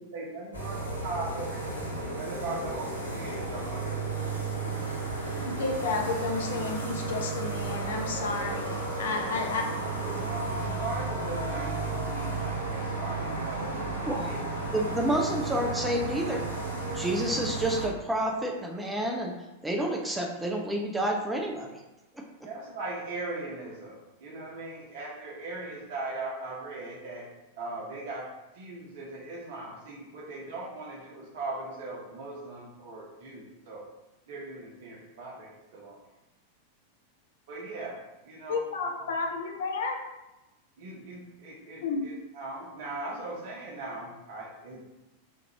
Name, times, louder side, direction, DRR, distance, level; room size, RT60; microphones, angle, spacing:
voice 1, 0.0-4.4 9.8-14.4 14.7-14.8 22.4-27.3 27.6-28.3 28.5-33.8 34.3-36.0 37.5-38.0 38.3-39.1 40.8-44.8, right 2 dB, 55° right, -2 dB, 1.0 m, -39 dB
sound 1, 0.5-17.9, right 3 dB, 90° right, 1.0 m, -33 dB
voice 2, 5.4-9.6 38.5-40.0 41.8-42.0, left 4 dB, 60° left, 2 dB, 0.5 m, -31 dB
voice 3, 14.7-16.4 16.9-19.3 19.6-21.8 22.2-22.3, right 1 dB, 5° right, -1 dB, 0.5 m, -29 dB
4.4 x 2.5 x 2.9 m, 0.99 s
figure-of-eight pair, 90°, 0 cm